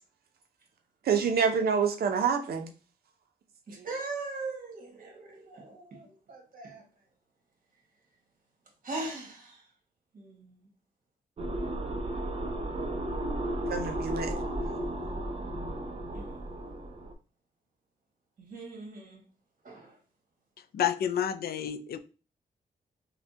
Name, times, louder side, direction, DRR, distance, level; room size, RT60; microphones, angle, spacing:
voice 1, 1.1-2.7 13.7-14.4, right 6 dB, 85° right, 0.6 m, -27 dB
voice 2, 3.7-6.8 8.8-9.7 10.1-10.7 16.1-16.4 18.4-19.2 19.6-20.0, right 3 dB, 60° right, 1.6 m, -40 dB
sound 1, 11.4-17.1, right 1 dB, 40° right, 0.5 m, -34 dB
voice 3, 20.7-22.0, left 9 dB, 85° left, 0.4 m, -29 dB
5.7 x 2.2 x 2.7 m
wide cardioid pair, 150°, 16 cm